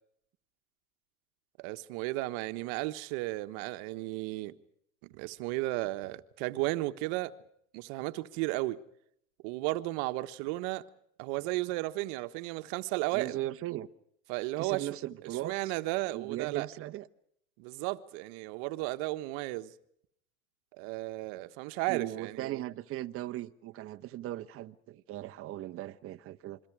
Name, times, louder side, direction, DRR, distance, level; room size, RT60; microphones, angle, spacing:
voice 1, 1.6-4.6 5.0-7.3 7.7-8.8 9.4-10.9 11.2-13.4 14.3-14.9 15.4-16.7 17.6-19.7 20.8-22.6, right 19 dB, 50° right, 1.4 m, -34 dB
voice 2, 13.1-13.9 14.6-15.7 16.1-17.1 21.9-26.6, right 14 dB, 35° right, 1.1 m, -38 dB
29.5 x 23.0 x 4.9 m
hypercardioid pair, 115°, 41 cm